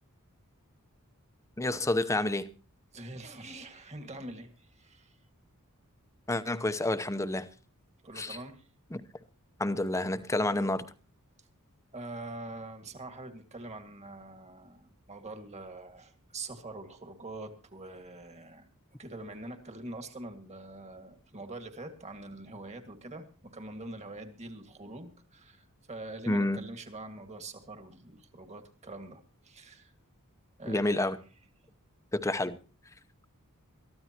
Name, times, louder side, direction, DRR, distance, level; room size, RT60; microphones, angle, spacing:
voice 1, 1.6-2.5 6.3-7.5 8.2-8.4 8.9-9.0 9.6-10.9 26.3-26.6 30.6-31.2 32.1-32.6, left 2 dB, 15° left, 0.8 m, -29 dB
voice 2, 2.9-5.2 8.0-8.7 11.9-18.7 19.0-29.9 30.6-31.2, right 2 dB, 30° right, 2.0 m, -44 dB
22.5 x 14.5 x 3.0 m
head